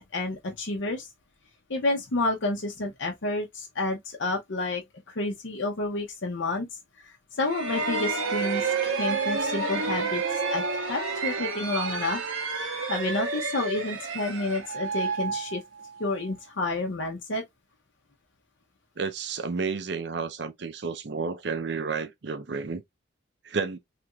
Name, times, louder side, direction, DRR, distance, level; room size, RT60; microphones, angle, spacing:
voice 1, 0.1-1.1 1.7-4.8 5.1-6.7 7.0-10.2 10.5-12.2 12.6-15.6 16.0-17.4, left 2 dB, 70° left, 0.7 m, -30 dB
sound 1, 7.4-16.1, right 4 dB, 90° right, 1.1 m, -30 dB
voice 2, 19.0-22.8 23.4-23.8, right 4 dB, 55° right, 0.5 m, -31 dB
3.3 x 3.0 x 2.3 m
head